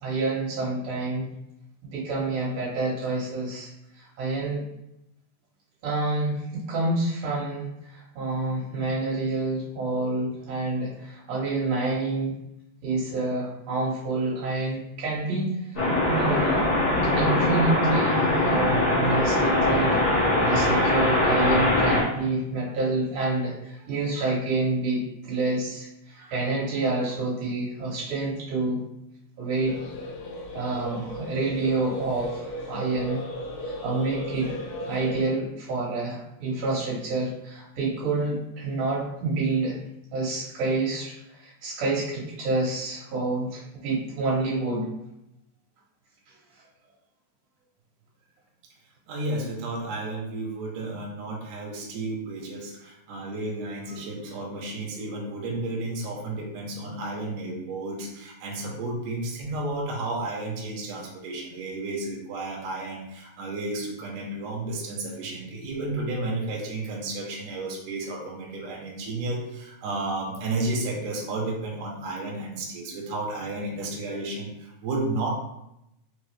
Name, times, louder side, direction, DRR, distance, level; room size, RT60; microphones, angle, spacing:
voice 1, 0.0-1.3 1.9-3.7 4.0-4.6 5.8-12.3 12.8-16.7 17.1-20.0 20.4-28.8 29.4-29.8 30.5-33.2 33.7-34.5 34.9-39.8 40.1-44.9, right 2 dB, 65° right, -5 dB, 2.3 m, -28 dB
sound 1, 15.7-22.0, left 1 dB, 65° left, 0.6 m, -22 dB
sound 2, 29.6-35.2, equal, 85° left, 2.4 m, -36 dB
voice 2, 49.1-75.3, right 2 dB, 85° right, -2 dB, 1.5 m, -32 dB
5.5 x 2.0 x 3.2 m, 0.85 s
omnidirectional pair, 4.1 m